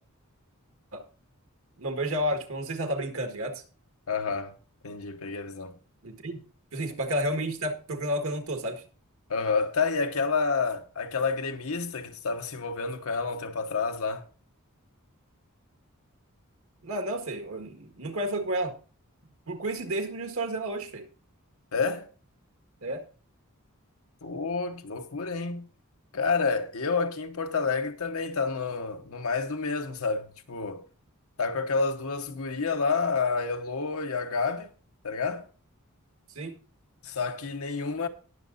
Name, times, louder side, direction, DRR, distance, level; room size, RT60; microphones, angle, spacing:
voice 1, 1.8-3.6 6.0-6.4 6.7-8.8 16.8-18.8 19.5-21.1 22.8-23.0 36.3-36.5, right 1 dB, 65° right, 1.7 m, -31 dB
voice 2, 4.1-4.6 4.8-5.7 9.3-14.3 21.7-22.1 24.2-25.7 26.1-30.8 31.4-34.7 35.0-35.5 37.0-38.1, left 4 dB, 70° left, 1.1 m, -29 dB
19.0 x 6.6 x 2.5 m
head